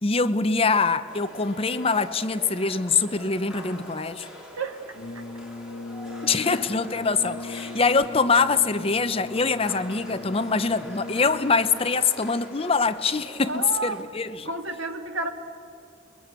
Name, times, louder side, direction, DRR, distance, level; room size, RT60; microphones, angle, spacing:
voice 1, 0.0-4.3 6.2-14.5, left 4 dB, 25° left, 0.7 m, -24 dB
sound 1, 1.1-14.0, equal, 5° right, 3.9 m, -44 dB
Brass instrument, 4.9-12.1, left 3 dB, 55° left, 1.4 m, -39 dB
voice 2, 13.4-14.0 14.5-15.3, right 3 dB, 75° right, 1.9 m, -30 dB
29.0 x 22.0 x 8.2 m
head